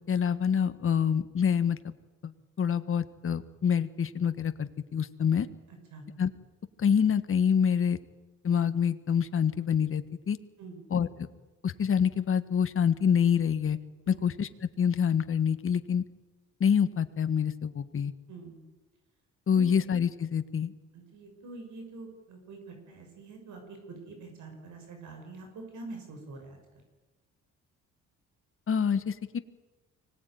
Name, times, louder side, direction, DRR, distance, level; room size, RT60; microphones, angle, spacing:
voice 1, 0.1-1.9 2.2-2.3 2.6-5.5 6.2-6.3 6.8-8.0 8.4-10.4 10.9-11.1 11.6-13.8 14.1-16.0 16.6-18.1 19.5-20.7 28.7-29.4, left 7 dB, 45° left, 10 dB, 1.5 m, -26 dB
voice 2, 18.3-18.6 19.5-19.7 20.9-26.6, right 3 dB, 75° right, 3 dB, 6.3 m, -45 dB
24.5 x 18.0 x 9.4 m, 1.2 s
cardioid pair, 90°, 30 cm